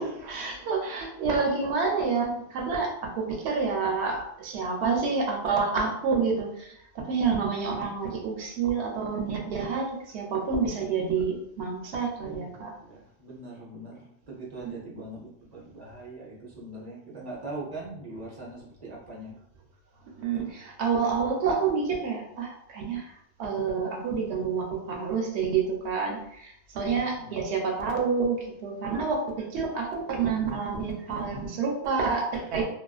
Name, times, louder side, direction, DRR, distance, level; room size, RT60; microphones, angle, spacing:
voice 1, 0.0-12.7 20.2-23.1 23.4-32.7, right 5 dB, 85° right, 0 dB, 0.8 m, -28 dB
voice 2, 12.2-19.4 26.9-27.4, right 2 dB, 45° right, -4 dB, 0.7 m, -41 dB
2.4 x 2.2 x 2.3 m, 0.74 s
omnidirectional pair, 1.1 m